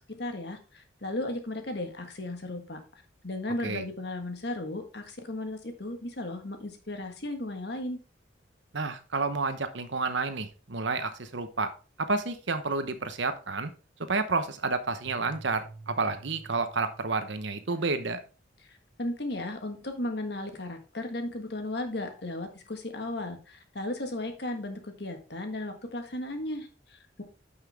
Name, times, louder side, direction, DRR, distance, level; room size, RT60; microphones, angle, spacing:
voice 1, 0.0-2.8 3.2-8.0 18.7-27.2, left 1 dB, 55° left, 5 dB, 1.5 m, -35 dB
voice 2, 8.7-11.7 12.0-13.7 14.1-18.2, right 3 dB, 70° right, 10 dB, 1.0 m, -30 dB
sound 1, 15.1-17.6, right 2 dB, 20° right, 0.8 m, -48 dB
9.7 x 5.8 x 3.4 m, 0.35 s
head